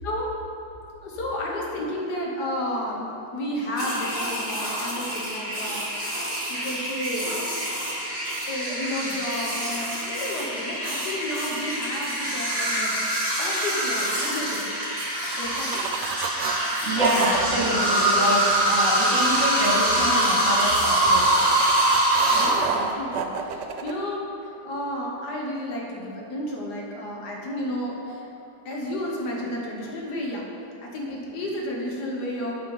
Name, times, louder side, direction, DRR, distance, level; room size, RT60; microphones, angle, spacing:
voice 1, 1.0-3.1 3.3-6.2 6.5-7.5 8.5-13.0 13.4-14.7 15.4-15.8 22.3-28.2 28.7-30.4 30.8-32.5, left 1 dB, 75° left, -2 dB, 1.8 m, -32 dB
sound 1, 3.8-22.5, right 1 dB, 15° right, 2.0 m, -25 dB
sound 2, 15.1-16.6 17.0-19.1 20.9-23.9, right 6 dB, 85° right, 1.3 m, -29 dB
voice 2, 16.8-21.7 28.0-28.2, right 1 dB, 50° right, -6 dB, 2.5 m, -27 dB
8.7 x 5.2 x 5.4 m, 2.8 s
omnidirectional pair, 1.8 m